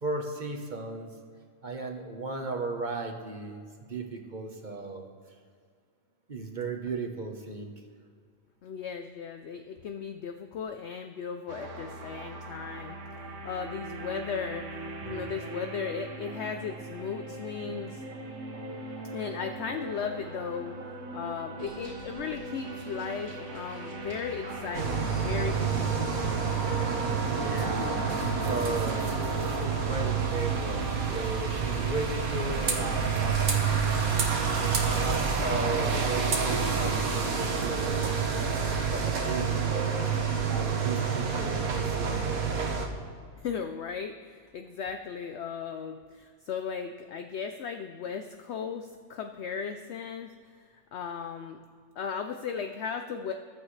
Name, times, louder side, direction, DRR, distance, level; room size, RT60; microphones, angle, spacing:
voice 1, 0.0-1.1 1.6-5.1 6.3-7.7 27.3-29.1 29.6-33.7 34.8-38.6 38.9-40.1 40.5-42.3, right 3 dB, 35° right, 3 dB, 1.2 m, -36 dB
voice 2, 8.6-13.0 13.4-14.6 15.0-18.0 19.1-20.7 21.1-26.2 43.4-50.3 50.7-51.6 52.0-53.3, left 6 dB, 60° left, 6 dB, 0.8 m, -36 dB
sound 1, 11.5-31.2, right 2 dB, 60° right, 1.4 m, -40 dB
Bus, 21.6-35.0, equal, 10° left, 3.2 m, -46 dB
sound 2, 24.7-42.9, right 5 dB, 85° right, 1.7 m, -28 dB
14.5 x 11.5 x 3.3 m, 2.1 s
omnidirectional pair, 1.5 m